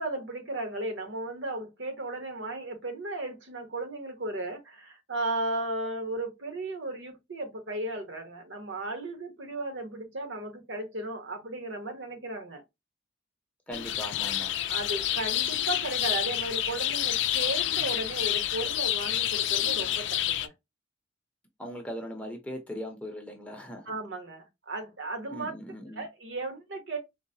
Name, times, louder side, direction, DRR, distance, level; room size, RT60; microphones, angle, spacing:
voice 1, 0.0-12.6 14.7-20.5 23.9-25.5 25.9-27.0, right 2 dB, 70° right, 1.1 m, -35 dB
sound 1, 13.7-20.5, left 12 dB, 65° left, 0.3 m, -28 dB
voice 2, 13.7-14.5 21.6-23.9 25.3-26.0, equal, 5° left, 0.6 m, -39 dB
3.8 x 2.1 x 2.6 m
head